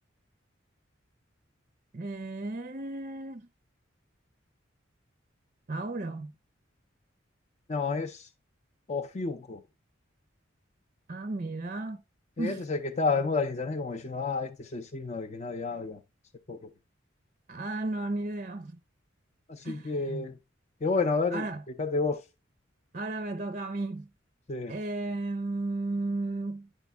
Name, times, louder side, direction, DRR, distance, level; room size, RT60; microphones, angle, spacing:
voice 1, 1.9-3.5 5.7-6.3 11.1-12.0 12.4-12.7 17.5-18.8 19.6-20.2 21.3-21.6 22.9-24.1 24.7-26.7, right 2 dB, 35° right, 0.5 m, -34 dB
voice 2, 7.7-8.3 8.9-9.6 12.4-16.0 16.5-16.7 19.5-20.4 20.8-21.4 21.8-22.2 24.5-24.7, left 4 dB, 35° left, 0.5 m, -30 dB
9.9 x 5.1 x 3.4 m
head